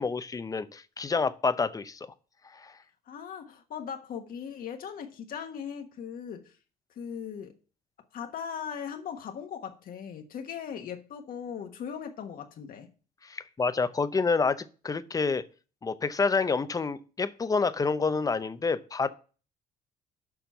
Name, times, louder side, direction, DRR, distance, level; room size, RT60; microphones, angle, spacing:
voice 1, 0.0-2.0 2.5-2.7 13.2-15.4 15.8-19.1, left 4 dB, 20° left, 0.6 m, -28 dB
voice 2, 3.1-6.5 7.0-7.5 8.1-12.9, left 7 dB, 55° left, 1.3 m, -39 dB
7.0 x 5.8 x 5.6 m
cardioid pair, 110°, 17 cm